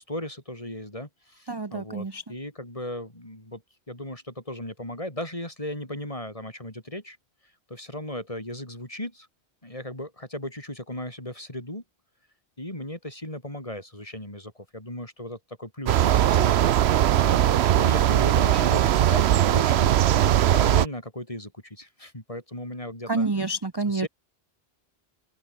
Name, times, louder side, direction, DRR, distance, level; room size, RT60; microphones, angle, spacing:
voice 1, 0.0-3.6 3.9-7.2 7.7-9.3 9.6-11.8 12.6-16.5 17.1-23.3 23.9-24.1, left 1 dB, 30° left, 5.4 m, -36 dB
voice 2, 1.5-2.3 23.1-24.1, right 3 dB, 25° right, 0.9 m, -28 dB
sound 1, 15.9-20.9, right 11 dB, 80° right, 0.9 m, -20 dB
open air
omnidirectional pair, 1.1 m